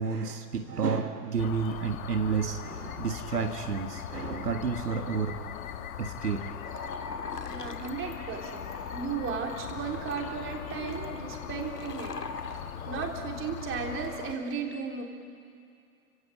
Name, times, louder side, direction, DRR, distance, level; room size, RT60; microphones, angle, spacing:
voice 1, 0.0-5.4 6.0-6.4, right 5 dB, 85° right, 6 dB, 1.7 m, -30 dB
sound 1, 1.4-14.3, left 9 dB, 60° left, 1.8 m, -40 dB
sound 2, 6.6-13.1, left 4 dB, 90° left, 1.4 m, -42 dB
voice 2, 7.4-12.2 12.9-15.0, right 6 dB, 25° right, 1 dB, 3.7 m, -35 dB
30.0 x 17.0 x 8.7 m, 2.4 s
figure-of-eight pair, 105°, 46 cm